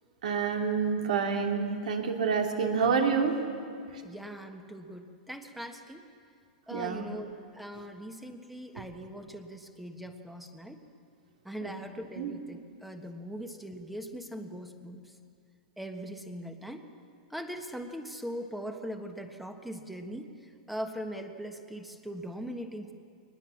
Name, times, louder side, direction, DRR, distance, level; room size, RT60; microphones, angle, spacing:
voice 1, 0.2-3.4 3.9-4.0 6.7-7.1 8.7-8.8 11.6-11.7 12.1-12.3, right 5 dB, 80° right, 2 dB, 2.9 m, -28 dB
voice 2, 4.0-6.0 6.7-10.8 11.4-15.1 15.8-16.9 17.3-22.9, equal, ahead, 5 dB, 1.4 m, -41 dB
23.0 x 20.0 x 7.2 m, 2.4 s
hypercardioid pair, 135°, 4 cm